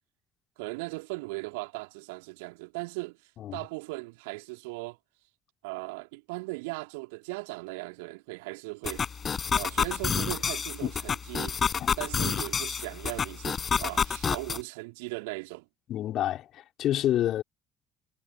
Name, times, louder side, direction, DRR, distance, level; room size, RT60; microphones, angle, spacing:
voice 1, 0.6-5.0 5.6-9.0 9.5-11.6 12.0-15.7, right 27 dB, 65° right, 3.3 m, -38 dB
sound 1, 8.8-14.6, left 6 dB, 35° left, 7.0 m, -29 dB
voice 2, 15.9-17.4, left 12 dB, 50° left, 3.9 m, -28 dB
figure-of-eight pair, 55°, 0 cm